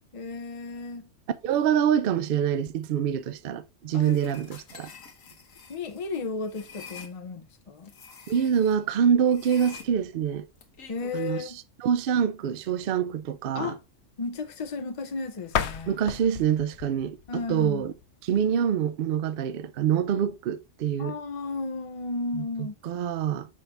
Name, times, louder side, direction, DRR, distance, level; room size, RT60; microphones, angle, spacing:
voice 1, 0.1-1.1 3.9-4.4 5.7-7.9 10.9-11.6 13.5-13.8 14.2-15.9 17.3-17.8 21.0-22.8, left 3 dB, 45° left, 0.4 m, -34 dB
voice 2, 1.4-4.9 8.3-10.5 11.1-11.4 11.8-13.7 15.9-17.9 18.2-21.1 22.6-23.5, right 8 dB, 60° right, 0.6 m, -25 dB
sound 1, 4.0-7.1 7.8-8.8 9.3-11.3, left 6 dB, 90° left, 1.5 m, -47 dB
sound 2, 15.4-18.3, left 8 dB, 65° left, 0.9 m, -34 dB
6.4 x 5.6 x 3.4 m
omnidirectional pair, 1.3 m